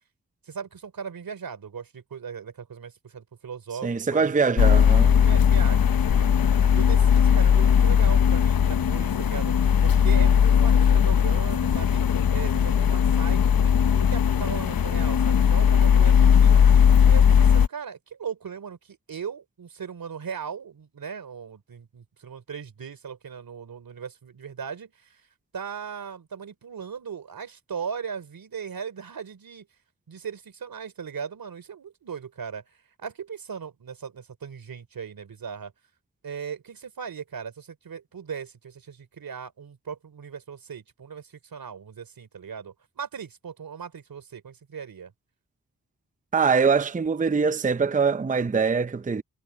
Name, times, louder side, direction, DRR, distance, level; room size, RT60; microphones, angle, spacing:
voice 1, 0.4-4.4 5.0-9.5 9.8-12.0 12.3-16.8 17.1-25.3 25.5-29.7 30.1-35.7 36.2-45.1, right 6 dB, 85° right, 3.2 m, -38 dB
voice 2, 3.8-5.2 46.3-49.2, right 5 dB, 25° right, 0.6 m, -23 dB
sound 1, 4.6-17.7, left 8 dB, 85° left, 0.9 m, -19 dB
cardioid pair, 50°, 34 cm